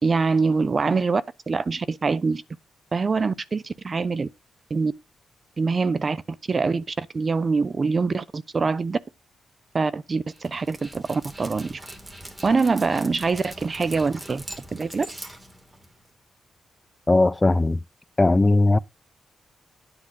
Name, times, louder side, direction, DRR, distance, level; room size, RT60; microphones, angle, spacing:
voice 1, 0.0-2.4 2.9-4.3 4.7-4.9 5.6-6.2 6.5-9.0 9.7-11.8 12.4-14.4 14.7-15.1, right 4 dB, 45° right, 0.8 m, -24 dB
Dog, 10.3-16.1, right 1 dB, 25° right, 2.4 m, -42 dB
voice 2, 17.1-17.8 18.2-18.8, left 2 dB, 25° left, 0.4 m, -18 dB
10.0 x 3.6 x 6.3 m
supercardioid pair, 55°, 0 cm